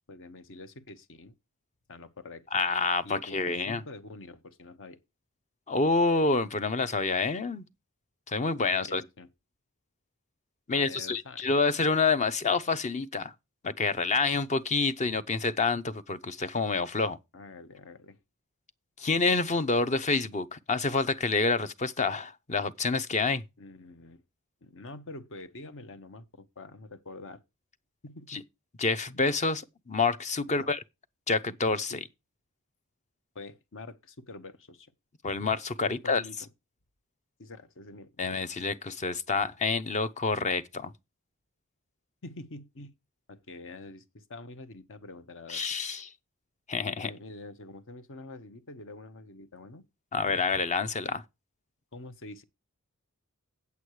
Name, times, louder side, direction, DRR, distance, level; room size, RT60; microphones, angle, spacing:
voice 1, 0.1-1.3 1.9-2.5 3.0-5.0 8.7-9.3 10.7-11.4 17.3-18.2 23.6-24.2 24.6-27.4 28.0-28.4 30.6-30.7 31.9-32.0 33.3-34.9 35.8-36.5 37.4-38.3 42.2-42.9 43.3-45.7 47.0-49.8 51.9-52.4, left 2 dB, 60° left, 1.1 m, -46 dB
voice 2, 2.5-3.8 5.7-7.6 8.3-9.0 10.7-13.3 13.6-17.2 19.0-23.4 28.3-28.4 28.8-30.8 31.3-32.0 35.2-36.2 38.2-40.9 45.5-46.1 46.7-47.1 50.1-51.2, left 4 dB, 35° left, 0.7 m, -28 dB
8.4 x 8.3 x 4.7 m
head